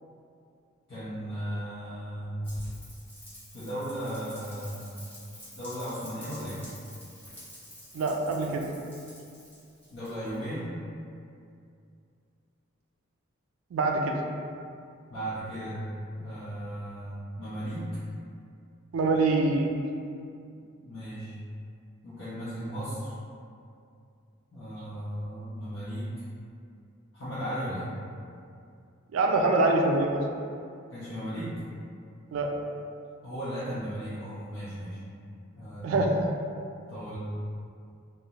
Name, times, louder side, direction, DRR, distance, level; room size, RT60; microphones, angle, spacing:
voice 1, 0.9-2.4 3.5-4.9 5.5-6.6 9.9-10.7 15.1-15.8 16.1-17.9 20.8-21.3 22.0-23.1 24.5-26.1 27.1-27.8 30.9-31.5 33.2-35.0 35.5-35.9 36.9-37.2, equal, 70° left, -14 dB, 0.6 m, -36 dB
Rain, 2.4-10.5, equal, 10° left, 0.8 m, -48 dB
voice 2, 7.9-8.6 13.7-14.2 18.9-19.7 29.1-30.2 32.3-32.5 35.8-36.3, right 2 dB, 85° right, 2 dB, 0.3 m, -24 dB
2.4 x 2.0 x 2.8 m, 2.4 s
head